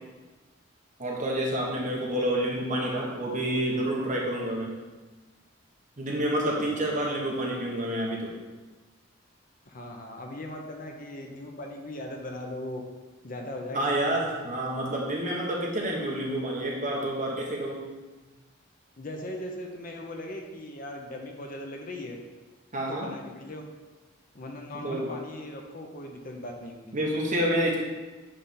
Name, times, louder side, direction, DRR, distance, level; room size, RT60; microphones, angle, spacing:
voice 1, 1.0-4.7 6.0-8.3 13.7-17.8 22.7-23.1 24.7-25.1 26.9-27.8, right 1 dB, 40° right, -2 dB, 1.2 m, -28 dB
voice 2, 6.4-7.0 9.6-12.8 13.2-13.9 19.0-22.2 22.9-23.6 24.3-26.9, left 1 dB, 40° left, 2 dB, 0.7 m, -39 dB
8.9 x 3.5 x 4.3 m, 1.2 s
head